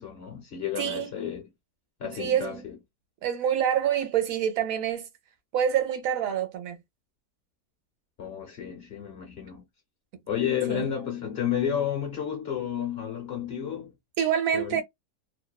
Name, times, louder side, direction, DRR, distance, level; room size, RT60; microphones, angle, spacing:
voice 1, 0.0-1.5 2.0-2.7 8.2-9.6 10.3-13.9 14.5-14.8, left 9 dB, 50° left, 0.8 m, -31 dB
voice 2, 0.8-1.1 2.2-2.6 3.2-5.1 5.5-6.8 10.7-10.9 14.2-14.8, right 9 dB, 70° right, 1.0 m, -26 dB
2.6 x 2.1 x 2.2 m
omnidirectional pair, 1.6 m